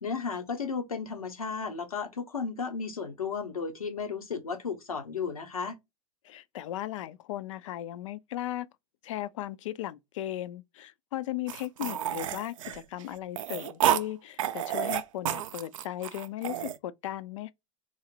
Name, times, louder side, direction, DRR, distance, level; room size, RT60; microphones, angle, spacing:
voice 1, 0.0-5.8, left 5 dB, 85° left, 0.7 m, -34 dB
voice 2, 6.2-8.7 9.0-17.5, left 13 dB, 65° left, 0.4 m, -37 dB
sound 1, 11.5-14.0 14.4-16.8, right 11 dB, 65° right, 0.4 m, -30 dB
3.7 x 2.1 x 3.1 m
figure-of-eight pair, 85°, 18 cm